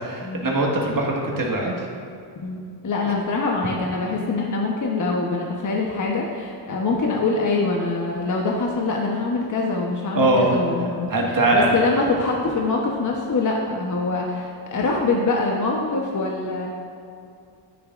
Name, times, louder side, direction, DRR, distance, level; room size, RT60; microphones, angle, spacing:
voice 1, 0.0-1.7 10.2-10.5 11.1-11.8, right 2 dB, 40° right, -1 dB, 1.8 m, -21 dB
voice 2, 2.8-16.7, left 3 dB, 40° left, -1 dB, 1.0 m, -24 dB
9.6 x 9.4 x 2.5 m, 2.4 s
cardioid pair, 75°, 49 cm